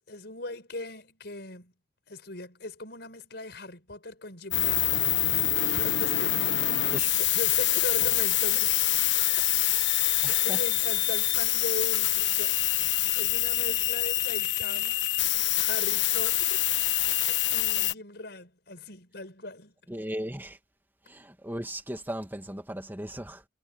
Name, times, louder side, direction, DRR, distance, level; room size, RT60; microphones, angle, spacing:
voice 1, 0.0-1.7 2.1-5.2 5.7-6.4 7.1-9.1 9.3-9.4 10.2-12.6 12.9-15.0 15.3-16.6 17.2-19.7, left 2 dB, 65° left, 6.3 m, -39 dB
sound 1, 4.5-17.9, left 14 dB, 85° left, 1.2 m, -25 dB
voice 2, 10.2-10.6 19.9-20.6 21.0-23.5, right 1 dB, 10° right, 2.3 m, -37 dB
head